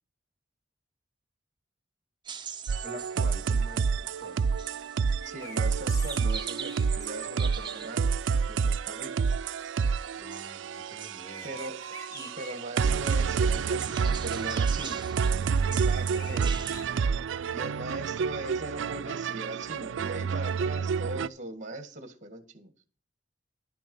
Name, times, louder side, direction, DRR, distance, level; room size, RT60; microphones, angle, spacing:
sound 1, 2.2-16.8, right 7 dB, 25° right, 0.9 m, -44 dB
sound 2, 2.7-21.3, right 5 dB, 85° right, 0.4 m, -29 dB
voice 1, 2.8-4.4 10.2-11.5, left 1 dB, 45° left, 4 dB, 2.5 m, -47 dB
sound 3, 5.0-7.3 11.2-12.5 13.1-13.4 15.4-16.8, equal, 20° left, 2.0 m, -46 dB
voice 2, 5.2-8.0 8.5-9.1 11.4-15.1 15.8-16.6 17.5-22.7, right 1 dB, 40° right, 8 dB, 1.8 m, -40 dB
11.5 x 7.0 x 5.4 m, 0.39 s
head